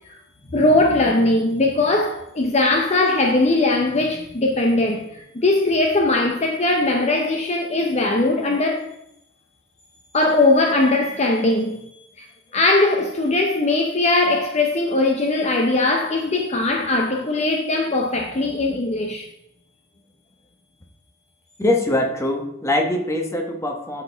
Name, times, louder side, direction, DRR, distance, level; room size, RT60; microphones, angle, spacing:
voice 1, 0.5-8.9 10.1-11.8 12.2-12.3 12.5-19.3, left 2 dB, 35° left, 0.7 m, -20 dB
voice 2, 21.6-24.0, left 1 dB, 15° left, 1.0 m, -22 dB
12.5 x 4.4 x 3.4 m
head